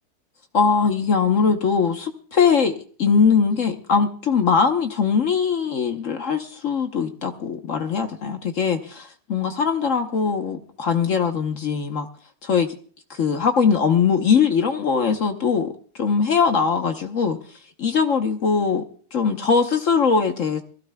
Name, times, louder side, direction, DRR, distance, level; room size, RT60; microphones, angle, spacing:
voice 1, 0.5-12.1 12.4-12.7 13.1-15.7 16.0-17.4 17.8-18.8 19.1-20.6, left 6 dB, 55° left, 0.9 m, -21 dB
23.0 x 16.0 x 2.2 m
omnidirectional pair, 2.3 m